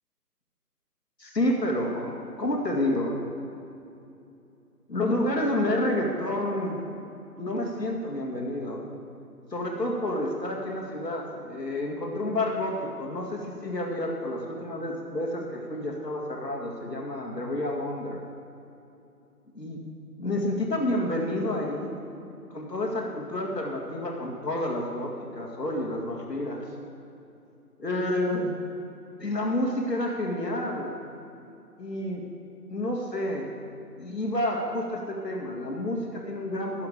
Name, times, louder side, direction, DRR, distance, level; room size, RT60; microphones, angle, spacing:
voice 1, 1.2-3.2 4.9-6.8 7.4-8.8 9.5-18.2 19.6-19.8 20.2-21.9 22.5-26.6 27.8-28.5 29.2-31.0 31.8-32.2 32.7-33.5 34.0-36.9, left 1 dB, 85° left, 0 dB, 2.1 m, -29 dB
14.0 x 10.5 x 3.8 m, 2.8 s
figure-of-eight pair, 155°, 48 cm